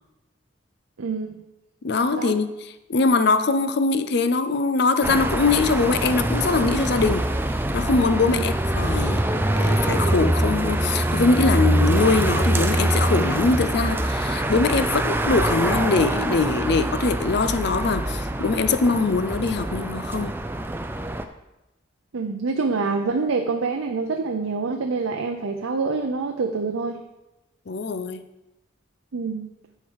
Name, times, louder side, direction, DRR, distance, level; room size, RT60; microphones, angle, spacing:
voice 1, 1.0-1.4 2.1-2.4 8.3-8.4 22.1-27.0 29.1-29.5, right 4 dB, 90° right, 4 dB, 0.6 m, -26 dB
voice 2, 1.8-2.5 2.9-7.3 7.7-9.2 9.6-20.3 27.7-28.2, left 3 dB, 55° left, 11 dB, 0.5 m, -22 dB
sound 1, 5.0-21.2, right 1 dB, 10° right, 0.3 m, -24 dB
10.5 x 4.6 x 4.7 m, 0.98 s
head